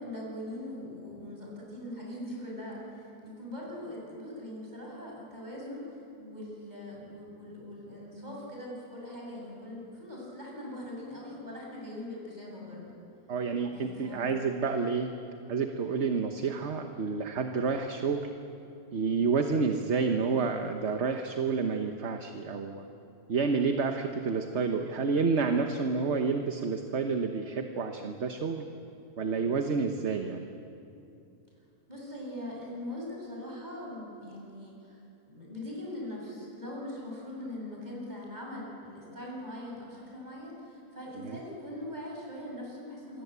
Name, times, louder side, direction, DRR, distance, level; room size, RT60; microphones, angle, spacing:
voice 1, 0.0-5.8 6.2-13.0 13.7-14.3 31.9-35.0 35.3-43.2, left 1 dB, 25° right, -3 dB, 7.7 m, -41 dB
voice 2, 13.3-15.1 15.5-18.2 18.9-22.8 23.3-28.7 29.2-30.5 41.2-41.4, right 5 dB, 50° right, 5 dB, 1.3 m, -29 dB
27.5 x 22.5 x 8.2 m, 2.7 s
omnidirectional pair, 1.7 m